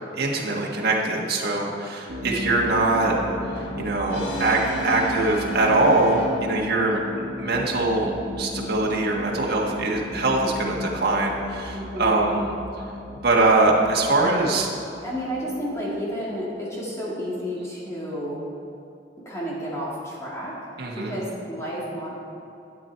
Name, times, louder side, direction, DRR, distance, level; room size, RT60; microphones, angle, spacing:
voice 1, 0.2-3.1 3.8-7.0 7.4-12.5 13.2-14.7 20.8-21.1, right 2 dB, 60° right, -2 dB, 1.6 m, -22 dB
sound 1, 2.1-16.5, left 1 dB, 80° right, 1.4 m, -36 dB
Brass instrument, 3.0-6.8, equal, 80° left, 1.4 m, -33 dB
voice 2, 11.7-12.2 14.2-14.3 15.0-18.4 19.3-20.6 21.0-22.1, equal, 15° left, -6 dB, 2.0 m, -31 dB
12.5 x 8.7 x 4.5 m, 2.7 s
head